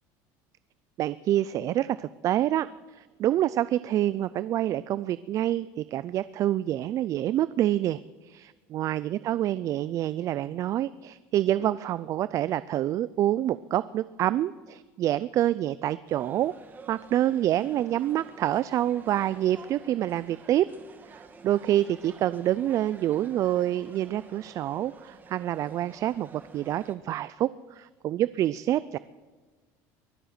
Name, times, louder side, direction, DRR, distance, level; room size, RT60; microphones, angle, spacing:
voice 1, 1.0-16.5 16.9-20.7 21.1-29.0, right 12 dB, 45° right, 17 dB, 0.4 m, -27 dB
sound 1, 16.1-27.0, right 4 dB, 25° right, 1.5 m, -50 dB
23.0 x 7.7 x 6.6 m, 1.4 s
cardioid pair, 130°, 8 cm